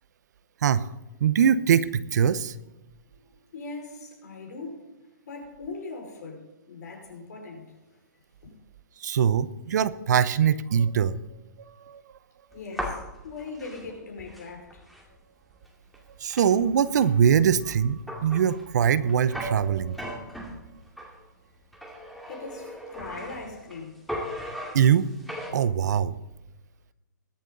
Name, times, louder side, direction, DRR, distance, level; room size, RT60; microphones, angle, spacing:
voice 1, 1.2-2.5 9.0-11.2 11.8-12.0 16.2-20.1 24.7-25.1 25.5-26.1, right 8 dB, 65° right, 0.8 m, -22 dB
voice 2, 3.1-4.8 5.2-7.8 8.4-8.5 12.5-14.8 22.3-24.0, left 3 dB, 65° left, 5.3 m, -40 dB
sound 1, 12.5-15.1 15.6-15.7 15.9-21.2 21.7-23.8 24.1-25.5, equal, ahead, 2.3 m, -38 dB
21.5 x 7.6 x 4.0 m
hypercardioid pair, 140°, 10 cm